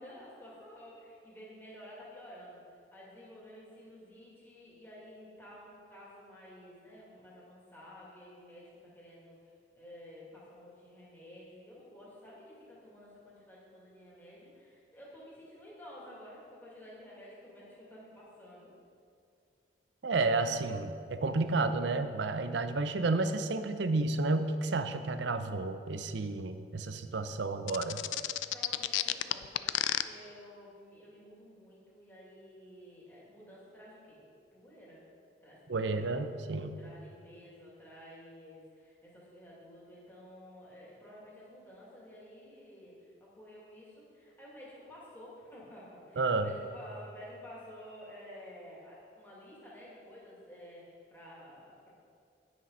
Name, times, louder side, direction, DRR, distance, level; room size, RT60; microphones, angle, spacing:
voice 1, 0.0-18.7 28.5-29.7 30.0-34.2 34.5-35.1 35.4-36.2 36.8-51.9, equal, 10° left, -7 dB, 2.4 m, -52 dB
voice 2, 20.0-28.0 35.7-36.8 46.2-46.5, right 3 dB, 75° right, 10 dB, 0.6 m, -31 dB
sound 1, 27.7-30.0, left 14 dB, 85° left, 0.3 m, -30 dB
10.0 x 6.3 x 5.5 m, 2.4 s
head